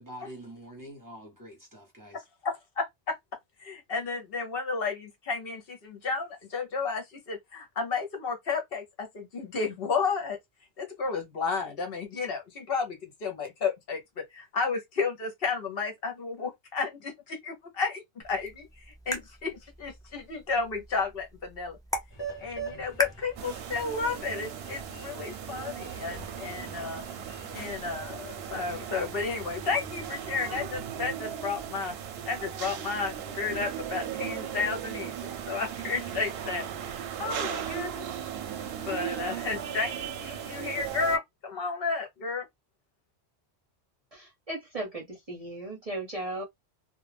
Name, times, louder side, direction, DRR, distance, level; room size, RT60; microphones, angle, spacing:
voice 1, 0.0-2.2, right 1 dB, 20° right, 1.0 m, -45 dB
voice 2, 2.4-3.1 3.6-10.4 10.8-21.8 22.4-27.0 27.5-32.0 32.3-36.7 37.2-38.0 38.8-42.5, left 4 dB, 60° left, 0.9 m, -32 dB
sound 1, 18.2-24.2, equal, 5° left, 0.4 m, -39 dB
sound 2, 22.1-31.0, right 4 dB, 25° left, 0.8 m, -46 dB
sound 3, 23.4-41.2, right 9 dB, 70° right, 0.7 m, -37 dB
voice 3, 44.1-46.4, right 2 dB, 40° right, 0.7 m, -36 dB
2.3 x 2.1 x 3.2 m
omnidirectional pair, 1.1 m